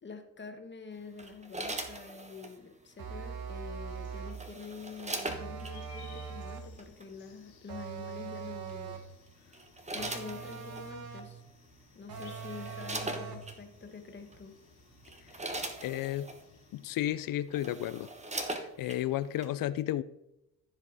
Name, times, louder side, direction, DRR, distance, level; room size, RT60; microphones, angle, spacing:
voice 1, 0.0-9.0 9.4-9.6 9.9-11.4 11.9-14.5, left 5 dB, 30° left, 6 dB, 1.5 m, -46 dB
sound 1, 1.2-2.6 3.9-5.8 6.8-7.0 8.7-9.0 9.5-10.9 11.7-11.8 12.1-13.6 14.3-14.5 14.9-16.4 17.1-17.2 17.5-19.0 19.4-19.5, right 2 dB, 15° right, 1.2 m, -40 dB
sound 2, 3.0-4.5 5.3-6.8 7.7-9.2 10.0-11.4 12.1-13.5, right 6 dB, 65° right, 1.5 m, -42 dB
sound 3, 3.9-16.9, left 6 dB, 85° left, 2.5 m, -60 dB
voice 2, 15.8-16.3 16.7-18.1 18.5-20.0, left 13 dB, 60° left, 15 dB, 0.5 m, -33 dB
14.5 x 5.2 x 4.0 m, 0.88 s
cardioid pair, 100°, 38 cm